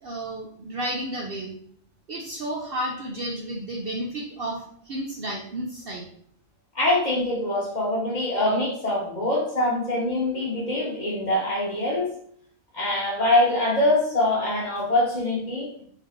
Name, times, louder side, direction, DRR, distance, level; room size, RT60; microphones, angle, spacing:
voice 1, 0.0-1.5 2.1-6.1, right 1 dB, 55° right, -1 dB, 0.7 m, -32 dB
voice 2, 6.7-12.1 12.7-15.7, left 1 dB, 35° left, -4 dB, 1.2 m, -24 dB
3.8 x 3.1 x 3.6 m, 0.63 s
omnidirectional pair, 1.4 m